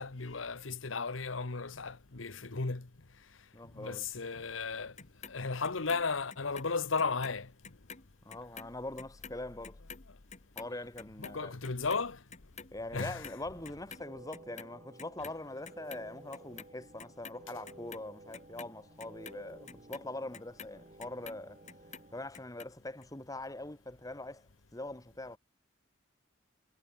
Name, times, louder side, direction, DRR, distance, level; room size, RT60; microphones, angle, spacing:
voice 1, 0.0-2.9 3.7-5.0 5.3-7.5 11.2-12.2 12.9-13.2, left 4 dB, 85° left, 1.2 m, -35 dB
voice 2, 3.5-4.1 8.3-9.8 10.6-11.6 12.7-21.6 22.1-25.4, left 2 dB, 20° left, 1.7 m, -43 dB
Clock, 5.0-7.4 7.6-14.1 14.3-15.4 15.6-16.7 17.0-21.4 21.7-22.7 23.0-23.1, left 6 dB, 40° left, 4.4 m, -49 dB
sound 1, 13.5-22.3, right 2 dB, 35° right, 2.8 m, -55 dB
head